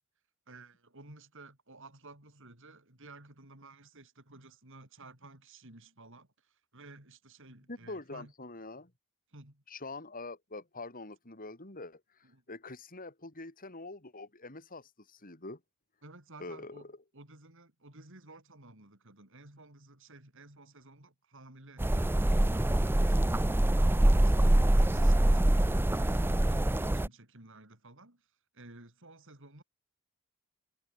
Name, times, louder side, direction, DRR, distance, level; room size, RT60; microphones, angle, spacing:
voice 1, 0.5-8.3 9.3-9.6 12.2-12.4 16.0-28.3 28.5-29.6, right 2 dB, 60° right, 5.6 m, -54 dB
voice 2, 7.7-8.9 9.7-15.6 16.4-17.0, left 2 dB, 40° left, 3.8 m, -45 dB
sound 1, 21.8-27.1, right 1 dB, 10° right, 0.4 m, -25 dB
head